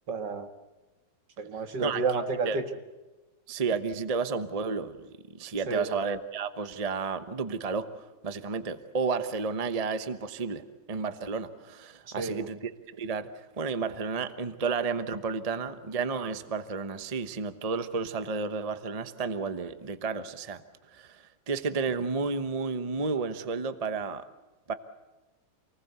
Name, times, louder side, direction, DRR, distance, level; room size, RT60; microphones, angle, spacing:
voice 1, 0.1-0.5 1.4-2.7 5.7-5.9 12.2-12.5, right 4 dB, 70° right, 7 dB, 2.3 m, -30 dB
voice 2, 3.5-7.9 8.2-10.6 10.9-13.3 13.6-20.6 20.9-24.2 24.7-24.8, right 4 dB, 25° right, 11 dB, 0.9 m, -32 dB
28.0 x 19.5 x 8.2 m, 1.2 s
omnidirectional pair, 2.0 m